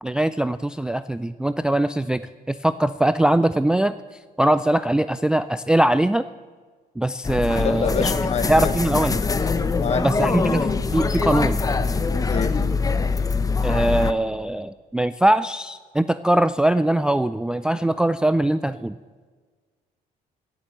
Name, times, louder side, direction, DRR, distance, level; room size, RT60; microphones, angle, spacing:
voice 1, 0.0-2.2 2.5-3.9 4.4-6.2 7.0-8.0 8.5-9.2 10.0-11.6 13.6-18.9, right 1 dB, 5° right, 13 dB, 0.3 m, -21 dB
sound 1, 7.2-14.1, left 4 dB, 20° left, 0.8 m, -23 dB
voice 2, 7.5-8.7 9.7-10.3 12.3-12.5, left 6 dB, 40° left, 12 dB, 1.0 m, -27 dB
16.0 x 7.5 x 7.9 m, 1.5 s
cardioid pair, 110°, 17 cm